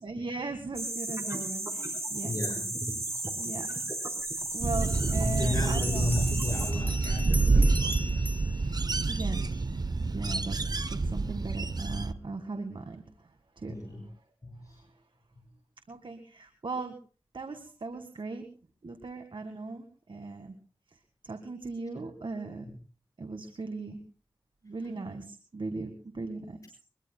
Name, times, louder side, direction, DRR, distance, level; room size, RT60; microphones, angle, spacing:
voice 1, 0.0-2.3 3.4-3.7 4.5-6.1 9.0-9.4 10.0-10.6 10.9-13.0 13.6-13.8 15.9-17.0 17.3-18.5 18.8-20.5 21.2-22.6 23.2-24.0 24.6-26.6, right 3 dB, 65° right, 6 dB, 1.9 m, -38 dB
sound 1, 0.7-6.7, right 2 dB, 35° right, 4.4 m, -34 dB
voice 2, 2.2-3.2 3.7-3.8 4.4-4.5 5.3-8.2 8.5-8.9 13.7-14.1 14.4-14.8 15.4-15.5 22.6-22.7, left 1 dB, 40° left, 0 dB, 6.7 m, -35 dB
Bell, 4.5-4.6 5.7-9.6, left 1 dB, 20° left, 2.1 m, -41 dB
sound 2, 4.6-12.1, right 3 dB, 50° right, 0.8 m, -28 dB
23.0 x 23.0 x 2.3 m, 0.38 s
wide cardioid pair, 75°, 9 cm